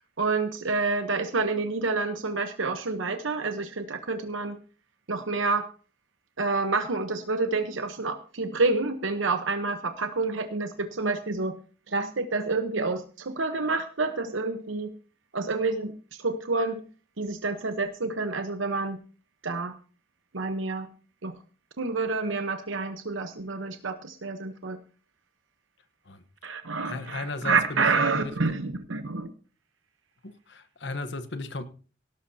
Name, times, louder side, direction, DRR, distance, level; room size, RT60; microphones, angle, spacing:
voice 1, 0.2-4.6 5.1-5.7 6.4-11.6 11.9-14.9 15.3-15.9 16.2-16.8 17.2-19.0 19.4-19.7 20.3-20.9 21.2-21.3 21.8-24.8 26.4-29.3, right 3 dB, 90° right, 1.0 m, -28 dB
voice 2, 26.1-26.6 26.8-27.9 28.2-28.3 30.2-31.6, left 2 dB, 65° left, 1.1 m, -36 dB
17.5 x 11.5 x 2.8 m
head